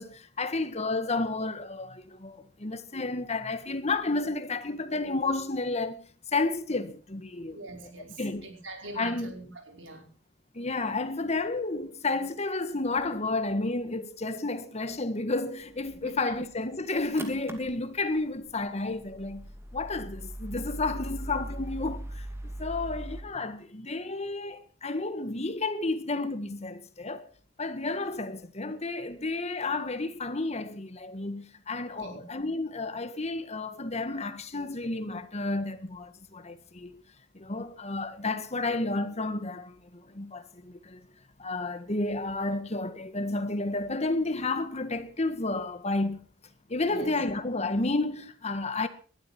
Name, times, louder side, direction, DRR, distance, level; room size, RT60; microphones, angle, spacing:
voice 1, 0.0-7.9 8.2-8.5 9.0-9.3 10.5-19.4 19.7-22.3 22.6-27.3 27.6-37.0 37.3-41.0 41.4-46.3 46.7-48.9, left 2 dB, 35° left, 1.7 m, -31 dB
voice 2, 7.5-10.1 16.0-16.2 31.9-32.2 46.9-47.1, right 2 dB, 70° right, 5.2 m, -43 dB
sound 1, 15.6-23.2, right 1 dB, 15° right, 2.7 m, -41 dB
20.0 x 13.0 x 4.4 m
head